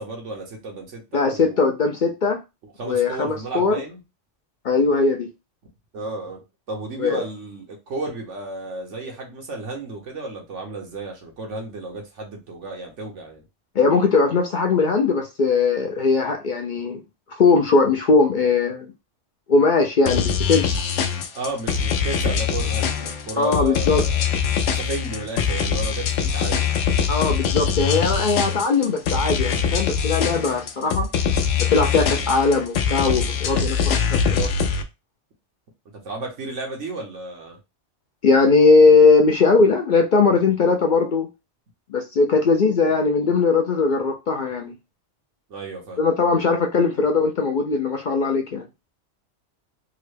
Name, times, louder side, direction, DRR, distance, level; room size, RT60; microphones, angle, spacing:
voice 1, 0.0-1.6 2.6-4.0 5.9-13.4 21.3-24.3 24.7-26.7 32.1-32.2 35.9-37.6 45.5-46.0, right 2 dB, 90° right, 1.4 m, -33 dB
voice 2, 1.1-2.4 2.9-3.8 4.6-5.3 7.0-7.2 13.8-17.0 17.4-18.9 19.5-20.7 23.4-24.0 27.1-31.1 31.7-34.0 34.3-34.5 38.2-41.3 41.9-44.7 46.0-48.6, left 4 dB, 55° left, 0.5 m, -19 dB
sound 1, 20.0-34.8, left 6 dB, 80° left, 0.9 m, -23 dB
3.7 x 2.1 x 3.2 m
omnidirectional pair, 1.2 m